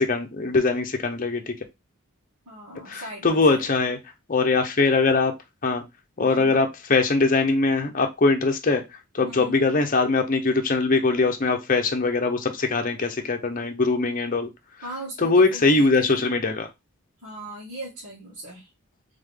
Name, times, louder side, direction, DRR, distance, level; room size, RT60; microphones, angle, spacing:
voice 1, 0.0-1.5 2.9-4.0 4.3-5.3 5.6-5.8 6.2-8.8 9.1-14.5 15.2-16.7, left 3 dB, 40° left, 0.7 m, -22 dB
voice 2, 2.5-3.7 6.2-6.6 9.2-9.6 14.8-16.3 17.2-18.7, right 1 dB, 85° right, 2.1 m, -39 dB
3.6 x 3.6 x 3.6 m
head